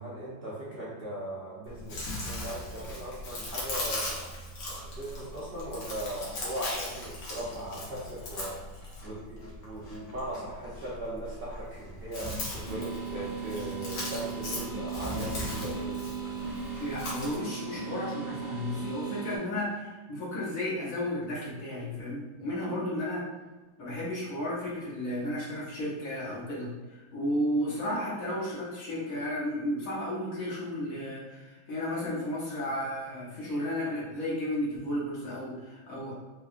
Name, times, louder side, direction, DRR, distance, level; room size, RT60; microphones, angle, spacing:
voice 1, 0.0-4.3 4.7-8.6 9.0-16.0, right 1 dB, 70° right, -8 dB, 0.5 m, -39 dB
Chewing mastication, 1.7-17.4, left 1 dB, 85° left, 1.6 m, -39 dB
sound 1, 12.6-19.4, right 5 dB, 40° left, 0.9 m, -37 dB
voice 2, 16.8-23.2 23.8-26.7 27.1-36.1, left 1 dB, 60° left, -5 dB, 1.2 m, -33 dB
4.4 x 2.3 x 2.4 m, 1.2 s
omnidirectional pair, 1.9 m